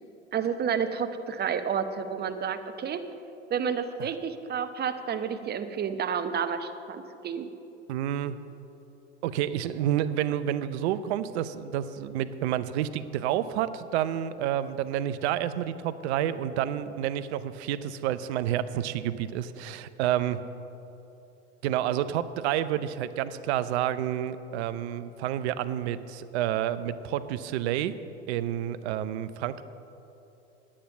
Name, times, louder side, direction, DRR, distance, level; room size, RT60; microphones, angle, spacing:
voice 1, 0.3-3.0 3.5-7.5, right 7 dB, 30° right, 9 dB, 0.8 m, -30 dB
voice 2, 7.9-8.4 9.2-20.4 21.6-27.9 28.3-29.6, right 11 dB, 65° right, 13 dB, 0.7 m, -29 dB
10.0 x 8.6 x 6.8 m, 2.9 s
hypercardioid pair, 80°, 35 cm